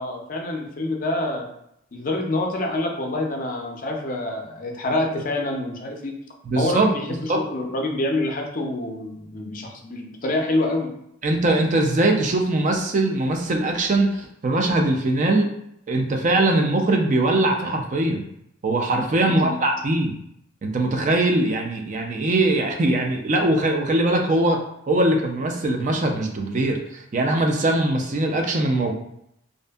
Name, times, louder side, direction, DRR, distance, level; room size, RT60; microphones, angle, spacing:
voice 1, 0.0-1.5 1.9-6.1 6.6-10.9 19.2-19.6, left 2 dB, 45° left, 2 dB, 0.4 m, -26 dB
voice 2, 6.5-6.9 7.3-7.4 11.2-15.5 15.9-18.2 18.6-20.1 20.6-24.6 24.9-28.9, right 2 dB, 40° right, 3 dB, 0.3 m, -21 dB
2.5 x 2.5 x 2.2 m, 0.76 s
head